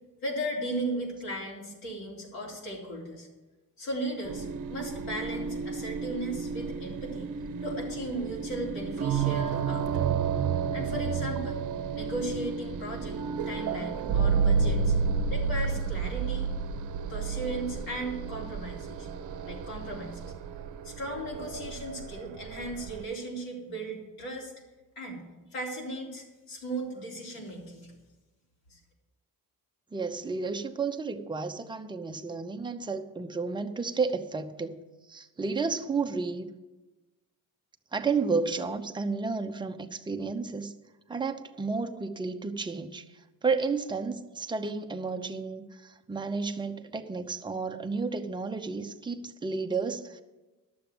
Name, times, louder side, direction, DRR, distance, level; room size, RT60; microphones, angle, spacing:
voice 1, 0.2-3.3 3.8-7.3 7.6-10.1 10.7-11.6 11.9-13.2 13.5-14.9 15.3-16.5 17.1-19.1 19.4-20.3 20.8-24.5 25.0-25.2 25.5-27.9 28.7-28.8, right 1 dB, 75° left, 3.8 m, -36 dB
sound 1, 4.2-23.0, right 6 dB, 60° right, 0.8 m, -31 dB
voice 2, 29.9-34.8 35.1-36.5 37.9-40.7 41.1-50.2, right 4 dB, 15° right, 0.7 m, -32 dB
12.0 x 7.0 x 7.2 m
cardioid pair, 120°, 35 cm